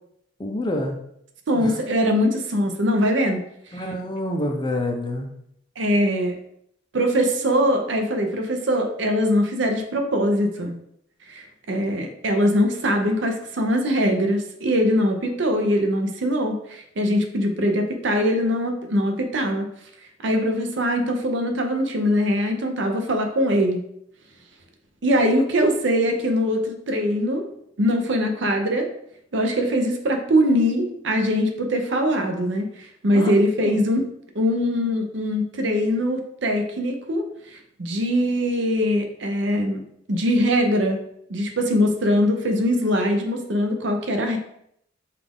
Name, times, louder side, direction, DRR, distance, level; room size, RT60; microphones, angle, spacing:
voice 1, 0.4-1.0 1.5-1.8 3.7-5.3 33.1-33.3 33.6-33.8, left 1 dB, 20° left, 3 dB, 0.5 m, -27 dB
voice 2, 1.5-3.5 3.7-3.9 5.8-6.4 6.9-10.7 11.3-19.7 20.2-23.8 25.0-27.5 27.8-28.9 29.3-34.1 34.3-41.0 41.3-44.4, equal, 65° right, 4 dB, 0.7 m, -22 dB
5.7 x 2.4 x 3.5 m, 0.72 s
head